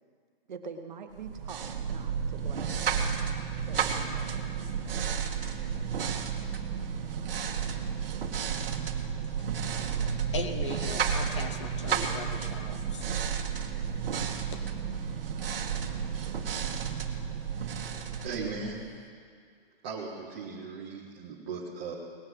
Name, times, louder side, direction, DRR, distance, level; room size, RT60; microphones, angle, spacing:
voice 1, 0.5-3.1 3.7-4.7, right 5 dB, 50° right, 5 dB, 1.4 m, -45 dB
sound 1, 1.2-19.0, right 7 dB, 70° right, 1.5 m, -32 dB
voice 2, 10.0-13.1, left 3 dB, 30° left, 7 dB, 0.7 m, -39 dB
voice 3, 18.2-18.8 19.8-21.9, right 4 dB, 10° right, -6 dB, 0.5 m, -37 dB
19.0 x 7.3 x 7.8 m, 2.1 s
hypercardioid pair, 170°, 29 cm